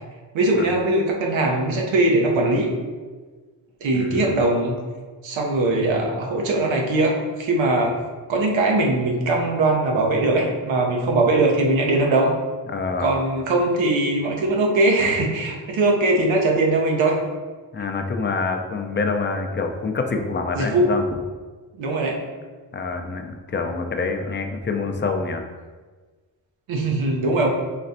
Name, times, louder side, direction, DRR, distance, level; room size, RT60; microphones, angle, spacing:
voice 1, 0.3-2.7 3.8-4.8 5.2-8.0 8.3-12.3 13.0-17.2 20.5-20.9 21.7-22.2 26.7-27.5, right 2 dB, 85° right, 0 dB, 0.8 m, -20 dB
voice 2, 3.9-4.4 12.7-13.1 17.7-21.0 22.7-25.4, left 4 dB, 25° left, 4 dB, 0.5 m, -26 dB
4.1 x 3.2 x 2.6 m, 1.4 s
cardioid pair, 55°, 45 cm